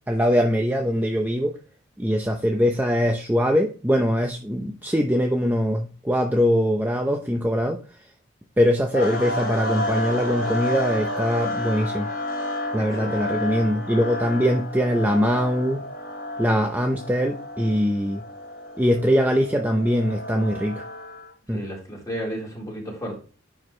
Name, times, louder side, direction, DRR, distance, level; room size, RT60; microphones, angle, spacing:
voice 1, 0.1-1.5 2.0-7.8 8.6-12.1 12.7-15.8 16.4-18.2 18.8-20.9 21.5-21.6, equal, 10° right, 3 dB, 0.7 m, -22 dB
sound 1, 8.9-21.3, left 1 dB, 45° left, 4.1 m, -31 dB
voice 2, 12.8-13.1 21.5-23.2, equal, 15° left, -3 dB, 3.9 m, -33 dB
10.5 x 4.7 x 3.2 m, 0.36 s
head